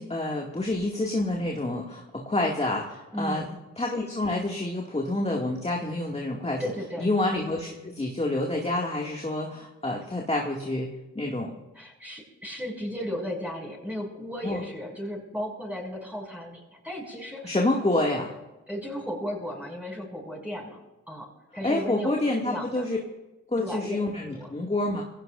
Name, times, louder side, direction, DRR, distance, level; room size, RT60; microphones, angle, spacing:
voice 1, 0.0-3.5 3.8-6.6 7.0-11.5 14.4-14.6 17.4-18.3 21.6-23.0 23.5-25.0, left 2 dB, 20° left, -1 dB, 2.2 m, -28 dB
voice 2, 3.1-3.5 6.6-7.1 11.7-17.6 18.7-20.8 21.1-22.1 22.4-22.8 23.6-24.0 24.3-24.5, equal, 5° right, -3 dB, 6.6 m, -35 dB
22.0 x 17.0 x 2.6 m, 1.0 s
supercardioid pair, 45°, 33 cm